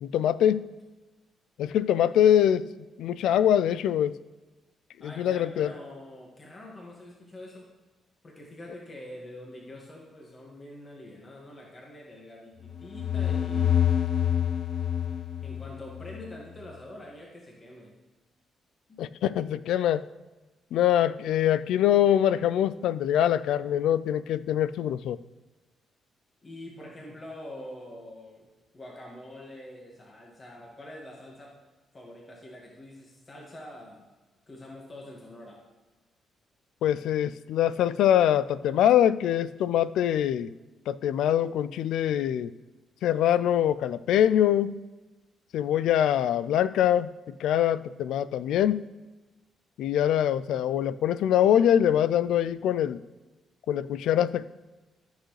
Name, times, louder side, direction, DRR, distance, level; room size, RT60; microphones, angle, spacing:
voice 1, 0.0-0.6 1.6-2.7 3.0-4.2 5.0-5.7 19.0-20.1 20.7-25.2 36.8-40.5 40.9-42.5 43.0-44.8 45.5-47.1 47.4-48.8 49.8-53.0 53.7-54.4, left 10 dB, 85° left, 17 dB, 0.3 m, -24 dB
voice 2, 5.0-7.7 8.2-13.8 15.4-17.9 18.9-19.0 26.4-28.5 28.7-31.5 31.9-34.0 34.5-35.6, left 1 dB, 35° left, -2 dB, 1.8 m, -45 dB
sound 1, 12.7-16.3, left 9 dB, 65° left, 0.7 m, -27 dB
14.0 x 6.4 x 3.2 m, 1.2 s
cardioid pair, 85°, 0 cm